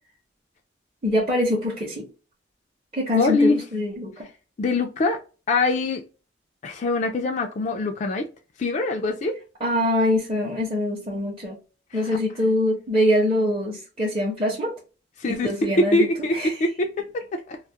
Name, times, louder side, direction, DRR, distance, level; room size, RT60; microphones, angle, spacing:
voice 1, 1.0-2.1 2.9-4.3 9.6-11.6 11.9-14.7 15.3-16.1 16.3-16.6, left 1 dB, 30° right, 0.7 m, -24 dB
voice 2, 3.2-3.6 4.6-5.2 5.5-6.0 6.6-8.3 8.6-9.4 11.9-12.1 15.2-15.5 15.8-17.6, left 2 dB, 40° left, 0.3 m, -23 dB
2.3 x 2.0 x 2.7 m
head